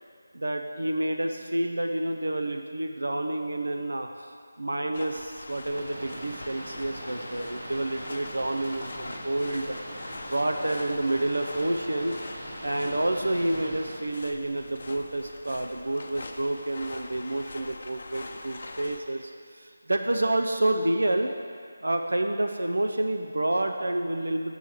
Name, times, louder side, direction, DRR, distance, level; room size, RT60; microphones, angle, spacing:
voice 1, 0.3-4.3 4.6-9.6 10.3-12.2 12.6-21.3 21.8-24.6, right 1 dB, 85° right, 4 dB, 0.5 m, -29 dB
sound 1, 4.9-19.0, left 2 dB, 50° left, 0.6 m, -43 dB
Boat Water vehicle, 5.6-14.0, right 1 dB, 50° right, 1.4 m, -41 dB
6.9 x 6.2 x 4.5 m, 2.1 s
figure-of-eight pair, 165°, 0 cm